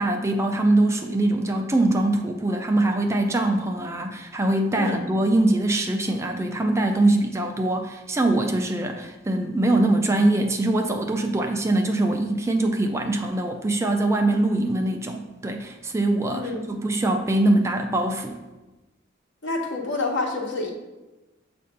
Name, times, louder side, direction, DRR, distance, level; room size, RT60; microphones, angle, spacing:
voice 1, 0.0-18.4, right 2 dB, 15° right, 3 dB, 0.4 m, -23 dB
voice 2, 16.3-16.7 19.4-20.7, left 2 dB, 65° left, 1 dB, 1.1 m, -28 dB
7.5 x 2.5 x 5.4 m, 1.1 s
head